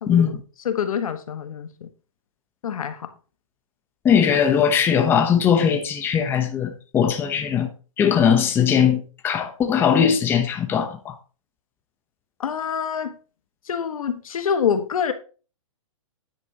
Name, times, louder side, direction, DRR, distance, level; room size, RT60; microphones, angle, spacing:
voice 1, 0.1-0.4 4.0-11.2, left 8 dB, 10° left, 0.9 m, -20 dB
voice 2, 0.6-1.9 2.6-3.1 12.4-13.2 13.7-15.1, left 7 dB, 80° left, 1.5 m, -26 dB
9.7 x 8.1 x 2.9 m
hypercardioid pair, 160°, 18 cm